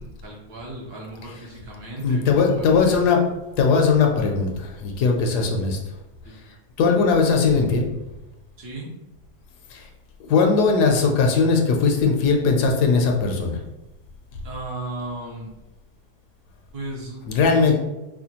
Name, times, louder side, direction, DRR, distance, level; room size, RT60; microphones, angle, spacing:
voice 1, 0.0-3.2 5.2-5.5 6.2-6.5 8.6-8.9 14.4-15.6 16.7-17.7, right 2 dB, 70° right, -2 dB, 1.3 m, -36 dB
voice 2, 2.0-3.2 3.6-5.8 6.8-7.9 9.7-9.9 10.3-13.6 17.3-17.7, left 4 dB, 75° left, 2 dB, 1.1 m, -19 dB
4.9 x 2.2 x 2.8 m, 0.99 s
omnidirectional pair, 1.8 m